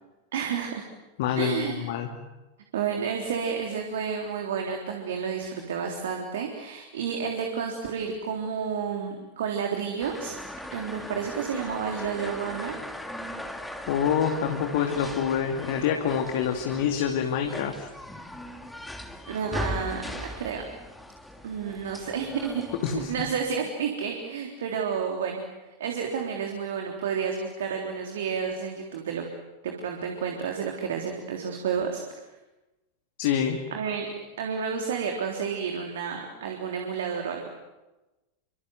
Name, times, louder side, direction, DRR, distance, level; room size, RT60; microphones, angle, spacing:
voice 1, 0.3-0.9 1.4-1.9 2.7-10.4 10.7-12.8 19.3-20.6 21.4-22.6 22.9-25.4 25.8-29.2 29.6-32.0 33.7-37.5, right 6 dB, 60° right, 2 dB, 3.6 m, -30 dB
voice 2, 1.2-2.1 13.9-17.9 22.8-23.1 33.2-33.6, left 8 dB, 50° left, 4 dB, 2.5 m, -26 dB
sound 1, 10.0-23.4, left 1 dB, 5° left, 2.9 m, -39 dB
29.0 x 25.5 x 7.9 m, 1.1 s
figure-of-eight pair, 90°, 0 cm